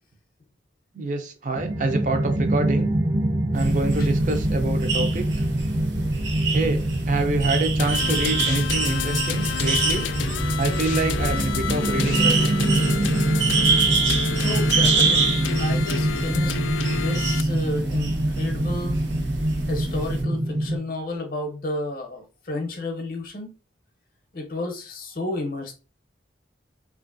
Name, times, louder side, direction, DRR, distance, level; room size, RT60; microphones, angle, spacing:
voice 1, 0.9-2.9 3.5-5.4 6.5-10.1 10.6-12.4, right 2 dB, 45° right, 0.4 m, -26 dB
sound 1, 1.5-20.8, right 1 dB, 60° right, 1.0 m, -25 dB
sound 2, 3.5-20.2, right 4 dB, 80° right, 0.7 m, -27 dB
sound 3, 7.8-17.4, left 7 dB, 90° left, 0.3 m, -30 dB
voice 2, 14.4-16.6 16.9-19.0 19.7-23.5 24.3-25.7, left 2 dB, 50° left, 0.6 m, -32 dB
2.9 x 2.4 x 2.5 m
head